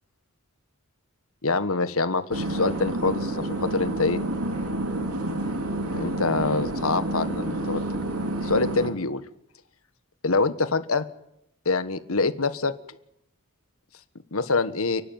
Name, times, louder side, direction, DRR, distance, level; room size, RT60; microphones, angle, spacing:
voice 1, 1.4-4.2 5.9-7.8 8.4-9.2 10.2-11.0 11.6-12.7 14.3-15.0, left 3 dB, 75° left, 12 dB, 1.5 m, -25 dB
sound 1, 2.3-8.9, right 1 dB, 90° right, 2.8 m, -29 dB
29.0 x 12.0 x 9.4 m, 0.78 s
head